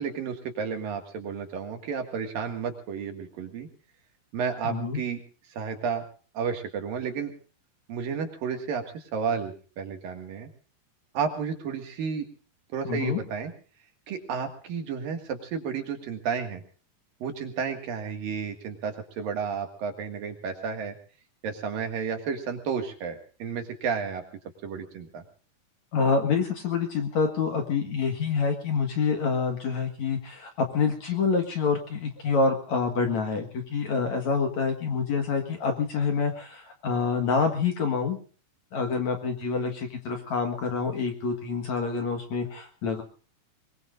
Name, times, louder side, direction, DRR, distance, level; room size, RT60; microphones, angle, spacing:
voice 1, 0.0-3.7 4.3-5.2 5.5-6.0 6.4-7.3 7.9-10.5 11.2-12.3 12.7-13.5 14.1-16.6 17.2-21.0 21.4-24.2 24.6-25.2, right 6 dB, 60° right, 5 dB, 3.5 m, -32 dB
voice 2, 4.6-5.0 12.8-13.2 25.9-38.2 38.7-43.0, left 5 dB, 55° left, 4 dB, 2.5 m, -27 dB
23.0 x 22.5 x 2.6 m, 0.39 s
omnidirectional pair, 4.8 m